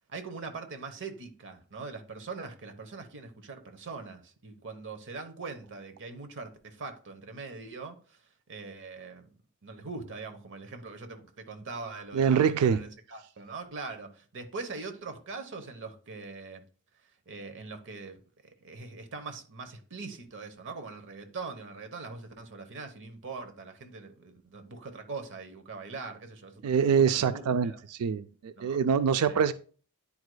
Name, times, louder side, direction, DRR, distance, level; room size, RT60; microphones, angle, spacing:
voice 1, 0.1-9.3 9.6-16.6 17.3-27.8 28.6-28.8 29.3-29.5, right 4 dB, 55° right, 0.9 m, -42 dB
voice 2, 12.1-12.8 26.6-29.5, right 7 dB, 80° right, 0.4 m, -25 dB
10.5 x 4.7 x 2.2 m
head